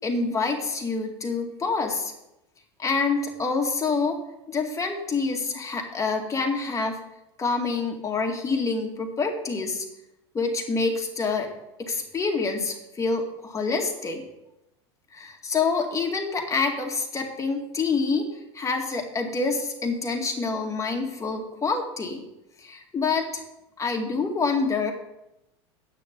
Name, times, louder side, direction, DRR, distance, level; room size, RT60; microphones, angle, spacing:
voice 1, 0.0-2.1 2.8-4.2 4.5-7.0 7.4-9.9 10.3-11.5 11.8-14.2 15.1-18.2 18.5-22.2 22.6-23.4 23.8-24.9, left 4 dB, 20° left, 2 dB, 2.1 m, -27 dB
9.2 x 6.5 x 6.9 m, 0.89 s
hypercardioid pair, 95°, 14 cm